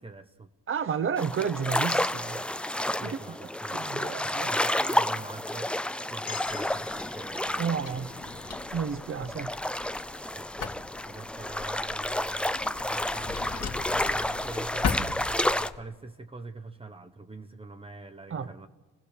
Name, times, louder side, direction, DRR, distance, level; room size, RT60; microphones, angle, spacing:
voice 1, 0.0-0.5 2.9-5.7 6.1-8.3 9.1-9.6 10.3-10.7 11.1-13.7 14.0-18.7, right 3 dB, 20° right, 0.9 m, -45 dB
voice 2, 0.7-2.5 2.8-3.2 3.7-4.5 7.6-8.1 8.7-9.5 18.3-18.5, right 6 dB, 45° right, 0.9 m, -31 dB
sound 1, 1.2-15.7, left 1 dB, 5° left, 0.5 m, -30 dB
sound 2, 6.3-10.5, left 9 dB, 75° left, 1.6 m, -48 dB
Drawer open or close, 6.4-15.8, left 5 dB, 55° left, 2.1 m, -39 dB
26.0 x 15.5 x 6.7 m
cardioid pair, 90°, 30 cm